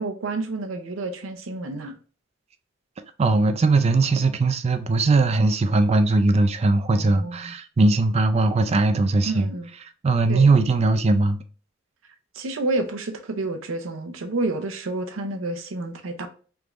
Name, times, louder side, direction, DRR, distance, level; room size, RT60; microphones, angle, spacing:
voice 1, 0.0-1.9 6.9-7.5 9.3-9.7 10.3-10.5 12.3-16.3, right 2 dB, 85° right, 0.6 m, -29 dB
voice 2, 3.2-9.5 10.0-11.4, right 3 dB, 30° right, 0.4 m, -20 dB
3.4 x 3.0 x 2.4 m
head